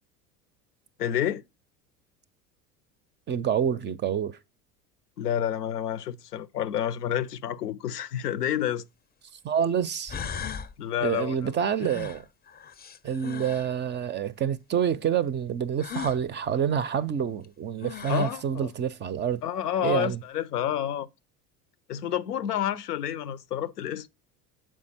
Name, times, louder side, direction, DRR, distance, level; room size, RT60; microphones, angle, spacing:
voice 1, 1.0-1.4 5.2-8.9 10.8-11.5 18.1-18.7 19.4-21.1 21.9-24.1, left 10 dB, 90° left, 0.6 m, -29 dB
voice 2, 3.3-4.4 9.4-10.2 11.0-12.3 13.0-19.4 19.8-20.2, right 8 dB, 25° right, 0.4 m, -27 dB
sound 1, 8.6-8.7 9.6-9.7 10.1-10.7 11.8-13.8 15.8-16.2 17.4-17.5 17.8-18.4, left 7 dB, 20° left, 0.6 m, -37 dB
7.3 x 4.5 x 4.2 m
hypercardioid pair, 75°, 46 cm